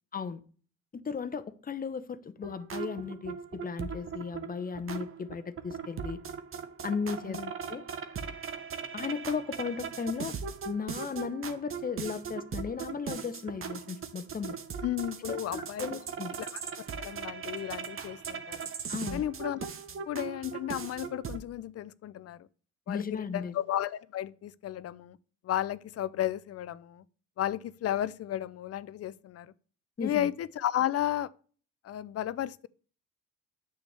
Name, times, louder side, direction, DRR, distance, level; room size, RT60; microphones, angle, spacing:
voice 1, 0.9-6.2 6.8-7.4 7.7-7.8 8.9-10.4 10.7-14.6 15.3-16.4 18.9-19.2 22.9-23.5 30.0-30.3, left 5 dB, 30° left, 0.8 m, -35 dB
sound 1, 2.4-21.4, right 6 dB, 45° right, 1.0 m, -39 dB
voice 2, 14.8-15.9 16.4-16.5 17.0-18.7 19.1-19.6 20.1-22.5 22.9-25.2 25.4-27.0 27.4-29.5 30.0-31.3 31.8-32.7, left 12 dB, 55° left, 0.5 m, -33 dB
9.1 x 7.0 x 3.3 m
cardioid pair, 90°, 30 cm